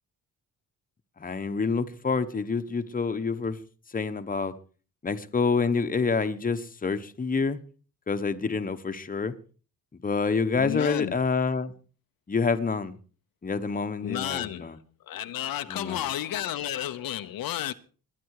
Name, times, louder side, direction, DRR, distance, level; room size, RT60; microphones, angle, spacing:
voice 1, 1.2-3.6 3.9-4.6 5.0-7.6 8.1-9.3 10.0-11.7 12.3-12.9 13.4-14.8 15.7-16.1, left 4 dB, 25° left, 1.2 m, -27 dB
voice 2, 10.6-11.2 14.0-17.7, left 11 dB, 80° left, 1.0 m, -32 dB
22.0 x 9.4 x 4.8 m
cardioid pair, 115°, 35 cm